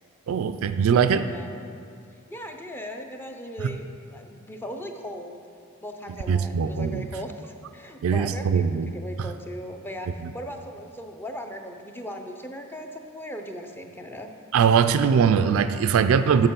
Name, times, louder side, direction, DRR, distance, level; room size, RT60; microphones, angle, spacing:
voice 1, 0.3-1.3 6.3-7.1 8.0-8.9 14.5-16.5, right 6 dB, 70° right, 11 dB, 0.3 m, -21 dB
voice 2, 2.1-5.4 5.8-14.3, equal, 10° left, 4 dB, 0.5 m, -38 dB
6.5 x 6.3 x 5.5 m, 2.4 s
head